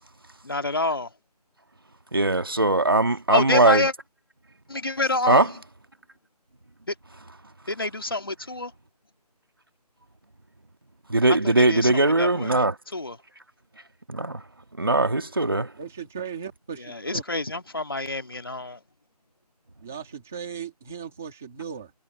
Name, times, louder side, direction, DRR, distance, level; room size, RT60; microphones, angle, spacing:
voice 1, 0.4-1.1 3.3-3.9 4.7-5.5 7.7-8.7 11.4-12.6 12.9-13.2 16.8-18.8, left 2 dB, 35° left, 1.9 m, -27 dB
voice 2, 2.1-3.9 5.3-5.5 11.1-12.8 14.1-14.4 14.8-15.7, right 2 dB, 35° right, 1.6 m, -20 dB
voice 3, 15.8-17.2 19.8-21.9, right 7 dB, 5° right, 1.4 m, -37 dB
figure-of-eight pair, 180°, 21 cm